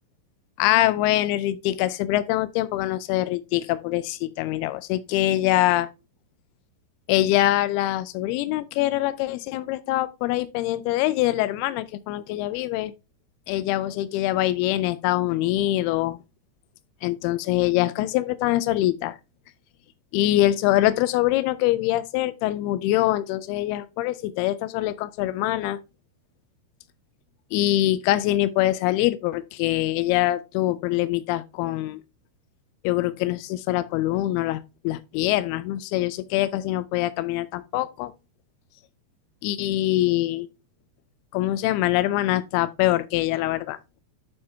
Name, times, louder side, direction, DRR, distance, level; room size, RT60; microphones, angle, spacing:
voice 1, 0.6-5.9 7.1-12.9 13.5-16.2 17.0-19.2 20.1-25.8 27.5-32.0 32.8-34.6 34.8-38.1 39.4-40.5 41.3-43.8, left 15 dB, 90° left, 2.2 m, -24 dB
11.0 x 4.4 x 3.3 m
omnidirectional pair, 5.1 m